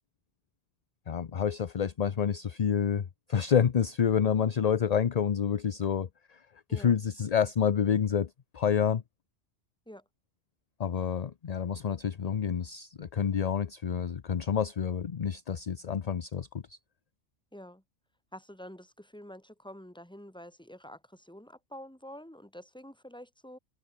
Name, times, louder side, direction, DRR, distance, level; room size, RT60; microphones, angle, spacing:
voice 1, 1.1-9.0 10.8-16.8, left 7 dB, 45° left, 0.6 m, -28 dB
voice 2, 17.5-17.8 18.3-23.6, equal, 5° left, 2.5 m, -47 dB
omnidirectional pair, 1.2 m